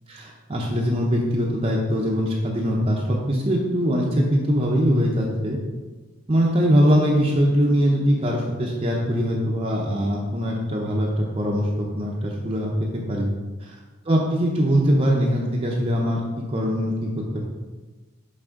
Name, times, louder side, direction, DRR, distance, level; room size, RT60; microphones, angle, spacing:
voice 1, 0.1-5.6 6.3-13.3 14.1-17.4, equal, 25° right, -2 dB, 0.6 m, -22 dB
7.7 x 4.1 x 3.6 m, 1.2 s
head